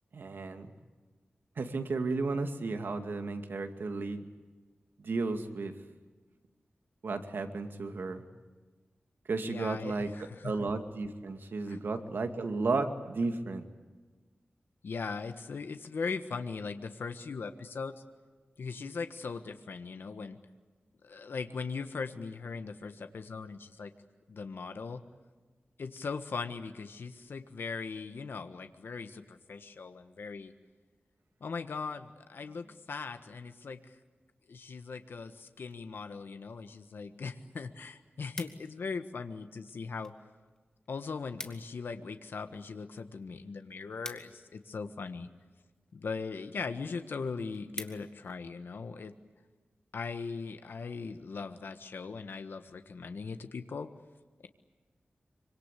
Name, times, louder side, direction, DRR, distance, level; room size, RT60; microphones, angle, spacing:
voice 1, 0.1-0.7 1.6-4.3 5.0-5.7 7.0-8.2 9.3-10.1 10.4-13.6, right 3 dB, 75° right, 7 dB, 2.3 m, -33 dB
voice 2, 9.4-10.7 11.7-11.8 14.8-17.9 18.6-20.4 21.0-23.9 24.3-25.0 25.8-30.5 31.4-34.0 34.5-40.1 40.9-45.3 45.9-49.1 49.9-53.9, left 4 dB, 80° left, 8 dB, 1.5 m, -39 dB
sound 1, 37.9-39.0 39.7-40.2 40.5-40.6 40.9-41.0 41.2-41.8 42.2-45.0 45.7-46.1 46.6-46.7 47.0-47.1 47.4-48.4 48.9-49.1, left 1 dB, 20° left, 2.4 m, -46 dB
26.0 x 25.0 x 8.4 m, 1.3 s
wide cardioid pair, 110°, 4 cm